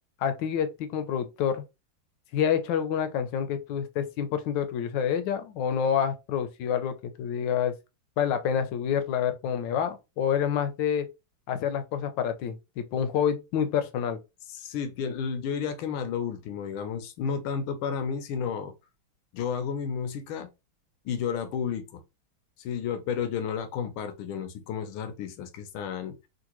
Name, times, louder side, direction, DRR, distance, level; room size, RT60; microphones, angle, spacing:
voice 1, 0.2-1.6 2.3-7.7 8.2-11.1 11.5-14.2, left 8 dB, 75° left, 1.1 m, -28 dB
voice 2, 14.5-18.7 19.3-20.5 21.0-22.0 22.6-26.2, left 7 dB, 90° left, 1.5 m, -32 dB
3.8 x 2.5 x 2.9 m
omnidirectional pair, 2.2 m